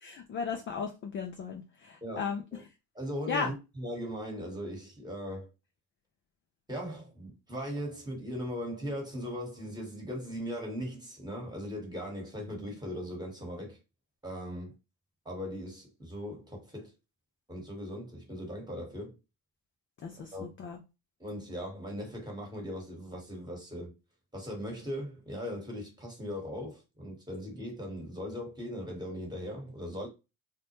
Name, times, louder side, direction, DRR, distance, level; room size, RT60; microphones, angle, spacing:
voice 1, 0.0-2.4 3.3-3.5 20.0-20.8, left 5 dB, 30° left, 0.4 m, -35 dB
voice 2, 2.0-2.6 2.9-5.5 6.7-13.8 14.2-14.7 15.2-16.9 17.5-19.2 20.3-20.4 21.2-23.9 24.3-30.1, equal, 10° right, 1.2 m, -39 dB
2.1 x 2.0 x 2.9 m
hypercardioid pair, 75°, 48 cm